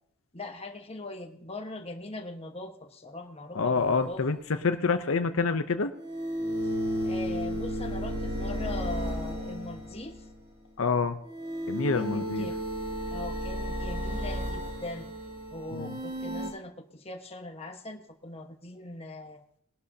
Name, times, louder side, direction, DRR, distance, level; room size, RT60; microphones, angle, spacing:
voice 1, 0.3-4.2 7.0-10.2 11.9-12.6 13.1-15.1 15.5-19.4, left 2 dB, 30° left, 4 dB, 1.3 m, -41 dB
voice 2, 3.5-4.4 4.6-5.9 10.8-11.2 11.7-12.5 15.7-16.0, left 4 dB, 70° left, 9 dB, 0.7 m, -27 dB
sound 1, 3.8-3.9 5.9-10.4 11.2-16.5, equal, 45° right, 6.0 m, -33 dB
20.0 x 12.0 x 2.8 m, 0.70 s
head